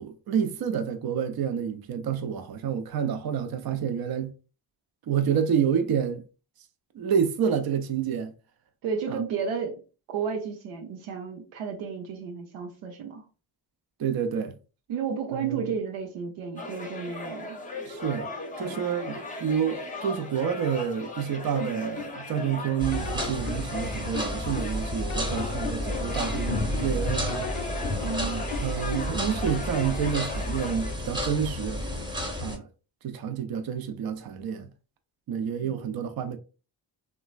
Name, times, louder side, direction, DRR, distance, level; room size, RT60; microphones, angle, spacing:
voice 1, 0.0-4.3 5.1-6.2 6.9-8.3 9.1-9.2 14.0-14.5 15.3-15.7 17.9-18.3 18.6-27.5 28.6-31.8 32.4-32.7 33.0-34.7 35.3-36.4, right 8 dB, 50° right, 0.6 m, -29 dB
voice 2, 8.8-9.8 10.1-13.2 14.9-17.6 18.6-18.9 28.0-28.5, right 6 dB, 90° right, 0.7 m, -32 dB
sound 1, 16.6-30.9, left 2 dB, 15° left, 0.7 m, -38 dB
sound 2, 21.5-22.6 22.9-24.8 25.1-26.9 27.3-29.2 29.5-30.3, left 8 dB, 70° left, 0.5 m, -38 dB
sound 3, 22.8-32.6, equal, 10° right, 0.9 m, -31 dB
3.0 x 2.2 x 2.3 m
supercardioid pair, 50°, 47 cm